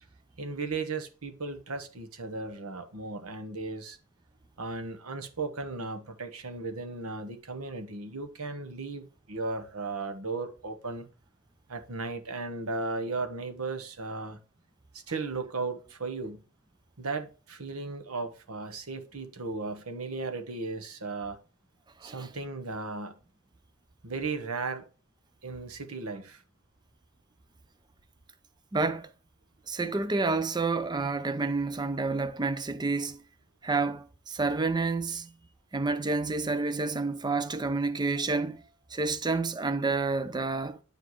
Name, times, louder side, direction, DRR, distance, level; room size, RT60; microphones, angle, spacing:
voice 1, 0.4-4.0 4.6-11.1 11.7-14.4 14.9-16.4 17.0-21.4 22.0-23.1 24.0-24.8 25.4-26.4, right 3 dB, 85° right, 1.2 m, -36 dB
voice 2, 28.7-29.1 29.7-33.2 33.6-35.3 35.7-38.6 38.9-40.8, right 3 dB, 20° right, 0.6 m, -29 dB
9.5 x 4.9 x 3.1 m
head